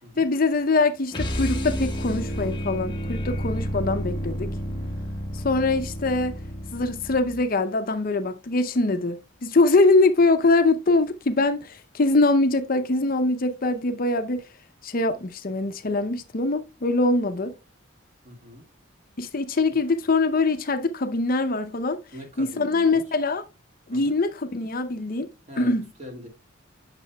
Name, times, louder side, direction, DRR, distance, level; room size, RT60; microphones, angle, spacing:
voice 1, 0.2-4.5 5.3-6.3 6.7-14.4 14.8-17.5 19.2-22.0 22.4-23.4 23.9-25.3 25.6-25.9, left 3 dB, 40° left, 0.6 m, -23 dB
sound 1, 1.1-7.6, equal, 20° left, 1.1 m, -30 dB
voice 2, 18.2-18.6 19.7-19.8 22.1-23.0 23.9-24.1 25.5-26.3, equal, 35° right, 1.7 m, -42 dB
8.8 x 6.4 x 2.2 m
head